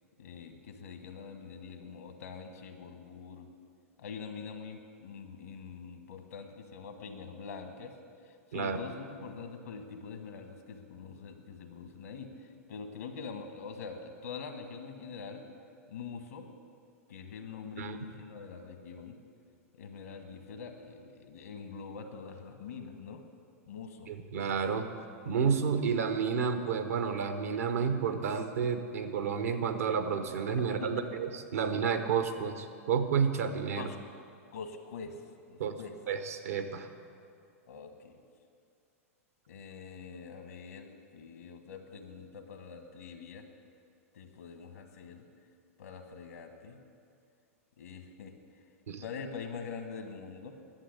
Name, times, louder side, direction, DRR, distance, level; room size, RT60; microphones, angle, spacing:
voice 1, 0.2-3.5 4.0-7.9 8.2-15.4 15.9-16.5 17.1-19.2 19.8-23.2 23.7-24.1 30.8-30.9 33.7-34.0 34.5-35.2 35.5-35.9 37.7-38.1 39.5-43.4 44.1-45.2 45.8-46.8 47.8-48.3 49.0-50.6, left 5 dB, 80° left, 6 dB, 1.5 m, -44 dB
voice 2, 24.1-24.9 25.2-33.9 35.6-35.7 36.1-36.9 48.9-49.0, right 6 dB, 80° right, 8 dB, 1.1 m, -30 dB
11.5 x 7.6 x 8.5 m, 2.3 s
hypercardioid pair, 105°, 8 cm